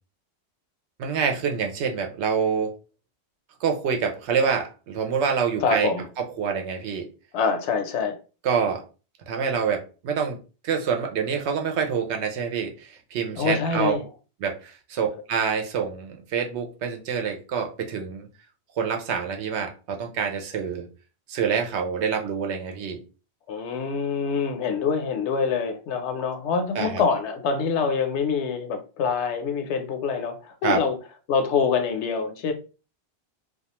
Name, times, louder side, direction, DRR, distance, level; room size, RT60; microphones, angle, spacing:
voice 1, 1.0-2.7 3.6-5.9 6.4-7.1 8.4-8.8 9.3-10.4 10.6-13.9 14.4-18.3 18.8-20.9 21.3-23.0 26.7-27.0 30.6-30.8, right 6 dB, 80° right, 0.9 m, -26 dB
voice 2, 5.6-6.0 7.3-8.2 13.4-14.1 23.5-30.9 31.3-32.5, left 5 dB, 80° left, 0.9 m, -25 dB
2.4 x 2.3 x 2.8 m
omnidirectional pair, 1.1 m